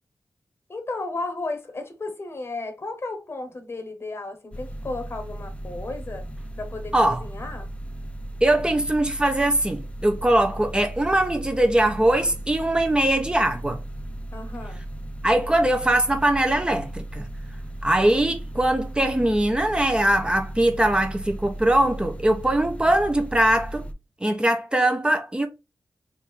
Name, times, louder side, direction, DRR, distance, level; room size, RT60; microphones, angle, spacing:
voice 1, 0.7-6.3 6.6-7.7 14.3-14.8, left 2 dB, 40° left, 1.1 m, -34 dB
sound 1, 4.5-23.9, right 1 dB, 20° left, 0.5 m, -36 dB
voice 2, 6.9-7.2 8.4-13.8 15.2-17.3 17.8-23.8 24.2-25.5, right 1 dB, 15° right, 0.7 m, -21 dB
3.6 x 2.7 x 4.4 m
wide cardioid pair, 90°, 6 cm